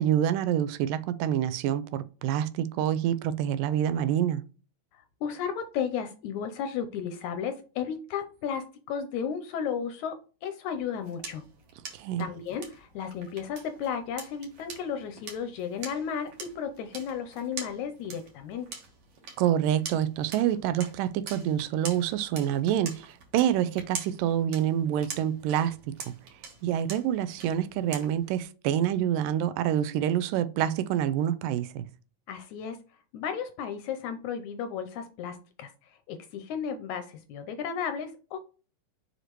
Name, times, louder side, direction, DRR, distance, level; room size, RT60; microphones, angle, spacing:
voice 1, 0.0-4.4 11.9-12.3 19.4-25.8 26.1-26.2 26.6-31.9, right 10 dB, 85° right, 2.3 m, -27 dB
voice 2, 4.9-11.4 12.2-18.7 32.3-32.8 33.1-38.4, left 7 dB, 80° left, 1.8 m, -34 dB
sound 1, 10.7-28.4, right 5 dB, 55° right, 2.3 m, -45 dB
6.3 x 5.0 x 3.0 m
omnidirectional pair, 3.8 m